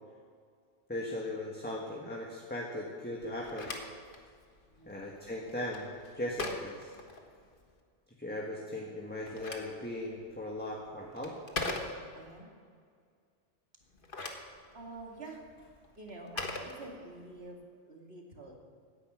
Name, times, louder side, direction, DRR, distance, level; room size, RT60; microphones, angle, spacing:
voice 1, 0.9-3.8 4.9-6.9 8.2-11.4, left 1 dB, 10° left, -2 dB, 1.4 m, -38 dB
Telephone, 3.2-7.7 9.0-12.4 13.8-17.4, left 2 dB, 50° left, 1.5 m, -42 dB
voice 2, 4.7-5.0 12.1-12.5 14.7-15.4 16.0-17.6 17.9-18.6, right 2 dB, 60° right, 0 dB, 2.5 m, -47 dB
17.0 x 9.9 x 6.2 m, 2.1 s
omnidirectional pair, 1.2 m